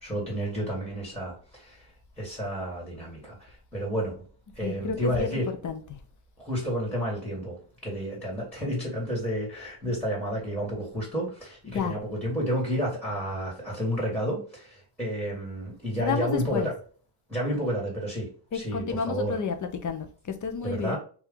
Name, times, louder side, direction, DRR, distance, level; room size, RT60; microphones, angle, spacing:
voice 1, 0.0-1.9 2.2-4.1 4.6-5.5 6.4-16.7 17.3-19.4 20.6-21.0, equal, 5° left, 1.9 m, -31 dB
voice 2, 4.6-5.8 11.7-12.0 16.0-16.7 18.5-21.0, left 6 dB, 40° left, 0.8 m, -31 dB
4.7 x 2.8 x 3.8 m
cardioid pair, 145°, 45 cm